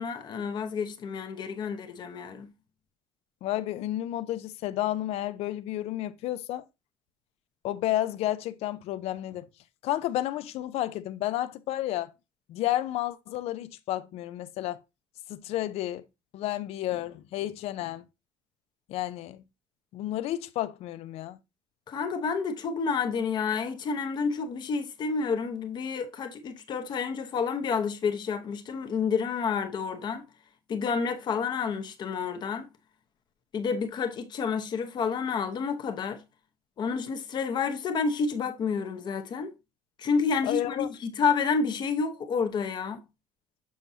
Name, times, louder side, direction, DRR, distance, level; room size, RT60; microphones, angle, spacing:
voice 1, 0.0-2.5 21.9-30.2 30.7-32.7 33.5-36.2 36.8-39.5 40.0-43.0, left 5 dB, 35° left, 0.9 m, -29 dB
voice 2, 3.4-6.6 7.6-9.5 9.8-12.1 12.5-14.8 15.3-16.0 16.3-18.0 18.9-19.4 19.9-21.4 40.4-40.9, left 14 dB, 50° left, 0.5 m, -31 dB
7.1 x 6.1 x 2.7 m
cardioid pair, 170°, 13 cm